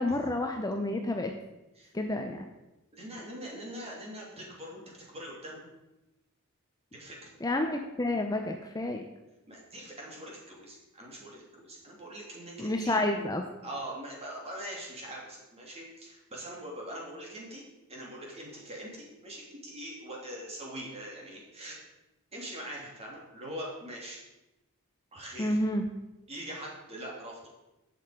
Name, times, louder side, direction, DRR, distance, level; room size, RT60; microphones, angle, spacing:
voice 1, 0.0-1.3 1.9-2.4 7.4-9.0 12.6-13.5 25.4-25.8, left 1 dB, 15° left, 4 dB, 0.6 m, -29 dB
voice 2, 2.9-5.6 6.9-7.3 9.5-13.0 13.6-17.6 17.9-21.8 22.3-24.2 25.1-25.6 26.3-27.5, right 1 dB, 30° right, -2 dB, 3.0 m, -42 dB
11.0 x 7.7 x 5.1 m, 1.0 s
head